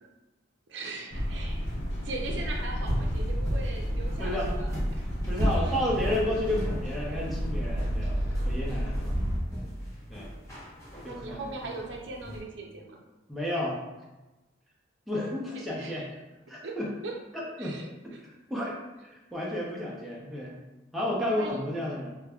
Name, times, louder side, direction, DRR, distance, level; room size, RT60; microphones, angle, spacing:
voice 1, 0.7-1.6 2.0-5.0 5.4-6.1 8.0-8.1 11.0-13.0 15.5-16.1 16.6-16.8 17.0-17.1 17.6-18.2 21.3-21.6, right 3 dB, 70° right, 1 dB, 0.6 m, -40 dB
sound 1, 1.1-9.4, equal, 60° left, 0.7 m, -31 dB
sound 2, 1.1-12.4, equal, 15° left, 0.9 m, -35 dB
voice 2, 4.2-4.5 5.2-9.2 10.1-10.3 11.0-11.5 13.3-13.8 15.1-16.1 16.5-16.9 17.3-17.8 18.2-18.8 19.0-20.6 20.9-22.1, left 1 dB, ahead, -6 dB, 0.6 m, -32 dB
5.0 x 2.2 x 2.3 m, 1.1 s
head